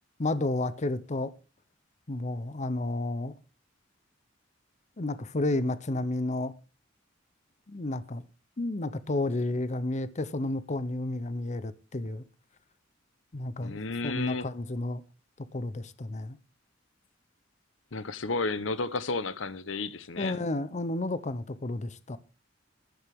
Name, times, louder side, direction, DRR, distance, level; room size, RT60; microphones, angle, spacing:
voice 1, 0.2-1.3 2.1-3.4 5.0-6.5 7.7-8.2 8.6-12.2 13.3-15.0 15.5-16.4 20.2-22.2, left 2 dB, 40° left, 0.7 m, -31 dB
voice 2, 13.6-14.5 17.9-20.4, left 3 dB, 80° left, 0.9 m, -32 dB
14.5 x 11.5 x 3.6 m
head